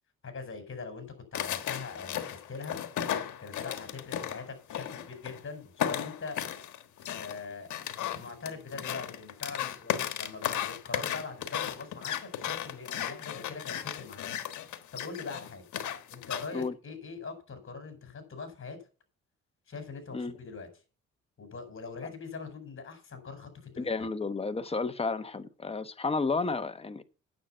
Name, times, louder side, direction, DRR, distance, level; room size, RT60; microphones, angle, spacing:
voice 1, 0.2-2.8 3.4-6.4 7.2-7.7 8.0-14.3 14.9-15.6 16.1-18.8 19.7-20.7 21.4-23.5 23.7-24.1, left 4 dB, 45° left, 4.8 m, -42 dB
sound 1, 1.3-5.4 5.8-16.6, left 10 dB, 75° left, 1.4 m, -35 dB
voice 2, 23.8-27.0, left 4 dB, 20° left, 1.1 m, -32 dB
9.3 x 7.7 x 5.6 m
cardioid pair, 90°, 30 cm